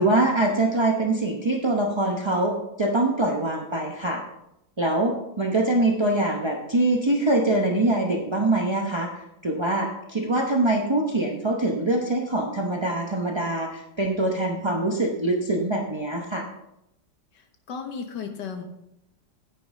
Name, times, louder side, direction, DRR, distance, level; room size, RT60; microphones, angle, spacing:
voice 1, 0.0-4.2 4.8-9.1 9.4-16.4, right 2 dB, 35° right, 0 dB, 0.4 m, -24 dB
voice 2, 17.3-18.6, left 6 dB, 75° left, 5 dB, 1.8 m, -35 dB
9.5 x 9.4 x 3.7 m, 0.83 s
omnidirectional pair, 1.9 m